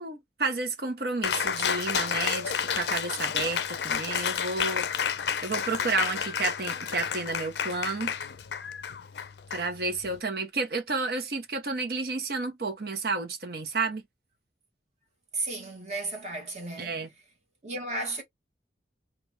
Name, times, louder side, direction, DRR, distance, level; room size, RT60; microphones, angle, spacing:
voice 1, 0.0-5.1 5.4-8.1 9.5-14.0 16.8-17.1, right 3 dB, 60° right, 0.8 m, -31 dB
Cheering, 1.2-10.2, left 8 dB, 70° left, 0.4 m, -31 dB
voice 2, 15.3-17.0 17.6-18.2, right 2 dB, 40° right, 1.4 m, -34 dB
3.0 x 2.5 x 3.2 m
head